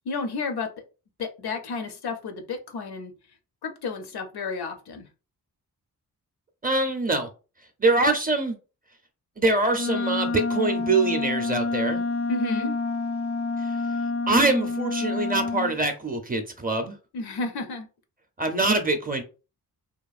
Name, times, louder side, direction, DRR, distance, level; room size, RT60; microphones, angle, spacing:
voice 1, 0.1-0.7 1.2-3.1 3.6-5.1 12.3-12.7 17.1-17.9, left 3 dB, 80° left, 0.7 m, -31 dB
voice 2, 6.6-7.3 7.8-8.6 9.4-12.0 13.6-13.8 14.3-17.0 18.4-19.2, right 2 dB, 25° right, 0.5 m, -24 dB
Wind instrument woodwind instrument, 9.7-15.8, left 3 dB, 40° left, 0.4 m, -28 dB
2.9 x 2.3 x 2.4 m
wide cardioid pair, 100°, 38 cm